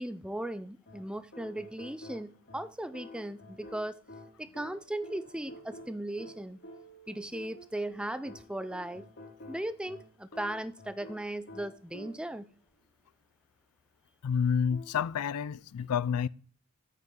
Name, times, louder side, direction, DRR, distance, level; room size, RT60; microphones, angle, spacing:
voice 1, 0.0-4.0 4.4-6.6 7.1-9.1 9.5-12.5, right 1 dB, 5° right, 0.4 m, -37 dB
sound 1, 0.9-12.5 14.7-15.5, left 1 dB, 55° left, 4.0 m, -50 dB
voice 2, 14.2-16.3, left 7 dB, 80° left, 0.4 m, -29 dB
9.0 x 6.7 x 3.6 m
head